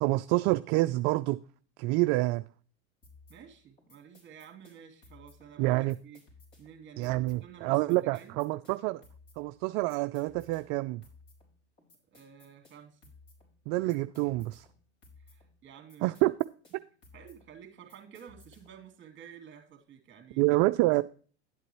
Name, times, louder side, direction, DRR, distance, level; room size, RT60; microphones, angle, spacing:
voice 1, 0.0-1.4 1.8-2.4 5.6-5.9 7.0-9.0 9.4-11.0 13.7-14.6 16.0-16.3 20.4-21.0, right 20 dB, 50° right, 0.4 m, -27 dB
sound 1, 3.0-18.9, left 3 dB, 35° left, 4.7 m, -59 dB
voice 2, 3.3-6.2 6.6-8.4 12.1-13.1 15.2-16.2 17.1-20.4, right 8 dB, 35° right, 2.6 m, -51 dB
11.0 x 8.3 x 3.1 m
hypercardioid pair, 100°, 34 cm